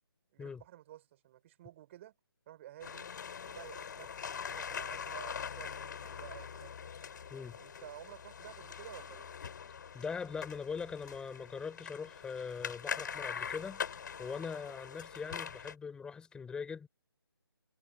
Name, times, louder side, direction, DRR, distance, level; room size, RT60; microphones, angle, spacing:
voice 1, 0.3-2.1 2.5-3.1 3.4-6.9 7.6-9.3, right 13 dB, 30° right, 5.1 m, -52 dB
sound 1, 2.8-15.7, left 7 dB, 45° left, 6.7 m, -43 dB
voice 2, 9.9-16.9, left 5 dB, 5° left, 5.2 m, -41 dB
figure-of-eight pair, 150°, 13 cm